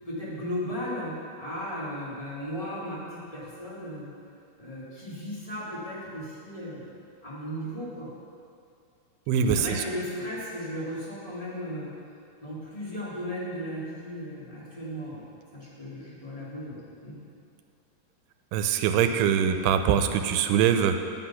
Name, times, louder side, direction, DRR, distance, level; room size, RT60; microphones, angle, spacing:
voice 1, 0.0-4.1 4.6-6.8 7.2-8.1 9.3-11.9 12.4-15.2 15.5-17.2, equal, 20° left, -8 dB, 1.0 m, -36 dB
voice 2, 9.3-9.8 18.5-21.0, right 8 dB, 85° right, 7 dB, 2.6 m, -23 dB
9.1 x 8.0 x 5.7 m, 2.4 s
omnidirectional pair, 4.6 m